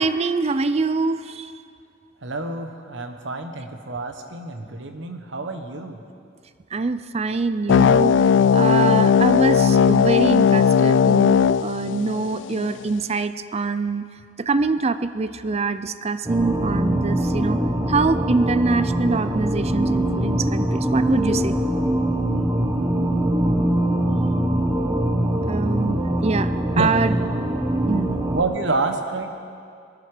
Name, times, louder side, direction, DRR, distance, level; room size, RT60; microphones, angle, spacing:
voice 1, 0.0-1.5 6.7-8.2 8.5-14.1 14.4-17.6 17.9-21.6 25.5-27.2 27.9-28.2, right 3 dB, 35° right, 13 dB, 0.5 m, -24 dB
voice 2, 2.2-6.0 26.7-26.9 28.3-29.3, right 2 dB, 75° right, 5 dB, 1.3 m, -28 dB
sound 1, 7.7-12.7, left 7 dB, 70° left, 0.3 m, -17 dB
sound 2, 16.3-28.4, right 1 dB, 15° right, 1.1 m, -23 dB
20.0 x 13.5 x 5.1 m, 2.3 s
head